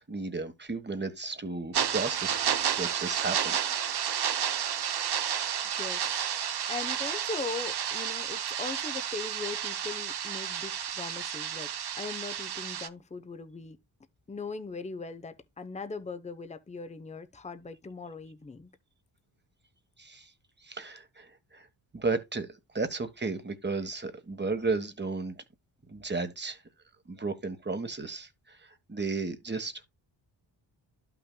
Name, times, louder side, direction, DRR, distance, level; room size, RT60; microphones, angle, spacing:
voice 1, 0.0-2.4 2.8-3.6 20.0-20.3 20.6-21.7 21.9-25.4 25.9-26.6 27.1-29.9, right 3 dB, 20° right, 1.4 m, -34 dB
sound 1, 1.7-12.9, right 9 dB, 55° right, 0.9 m, -31 dB
voice 2, 5.8-6.1 6.7-11.7 12.0-13.8 14.3-18.7, left 4 dB, 15° left, 0.8 m, -39 dB
12.0 x 5.9 x 2.2 m
cardioid pair, 65°, 47 cm